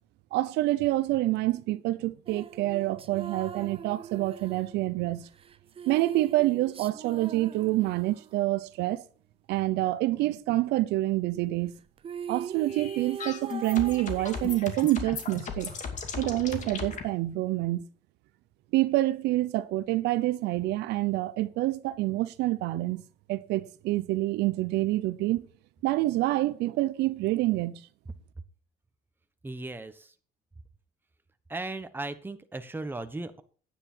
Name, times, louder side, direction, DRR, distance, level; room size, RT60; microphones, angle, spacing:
voice 1, 0.3-5.3 5.9-9.0 9.5-11.7 12.3-15.7 16.2-17.8 18.7-23.0 23.3-25.5 25.8-27.8, right 17 dB, 85° right, 0.7 m, -27 dB
sound 1, 2.3-8.4 11.7-11.8 12.0-15.2, right 7 dB, 35° right, 0.7 m, -41 dB
sound 2, 12.7-17.0, left 5 dB, 45° left, 2.5 m, -36 dB
voice 2, 29.4-30.1 31.5-33.4, right 2 dB, 10° right, 1.2 m, -37 dB
9.8 x 9.6 x 4.5 m
cardioid pair, 110°, 17 cm